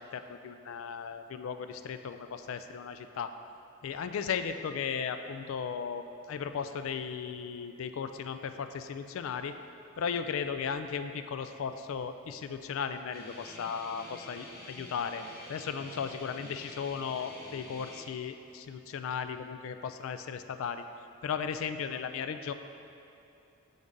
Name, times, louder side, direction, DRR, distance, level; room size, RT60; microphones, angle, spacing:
voice 1, 0.0-3.3 3.8-9.5 10.0-15.2 15.5-20.8 21.2-22.5, left 6 dB, 65° left, 10 dB, 0.3 m, -36 dB
Guitar, 13.1-18.0, left 1 dB, 45° left, 0.8 m, -48 dB
8.4 x 3.9 x 3.7 m, 2.8 s
head